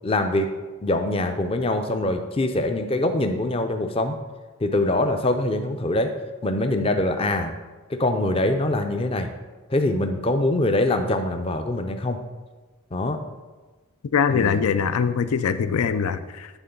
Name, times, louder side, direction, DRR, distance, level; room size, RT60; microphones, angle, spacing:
voice 1, 0.0-0.5 0.8-4.2 4.6-6.1 6.4-7.5 7.9-9.3 9.7-12.2 12.9-13.2 14.3-14.6 15.6-15.8, left 1 dB, 25° left, 6 dB, 0.4 m, -23 dB
voice 2, 14.1-16.5, left 6 dB, 85° left, 12 dB, 0.4 m, -22 dB
9.1 x 3.6 x 5.3 m, 1.3 s
head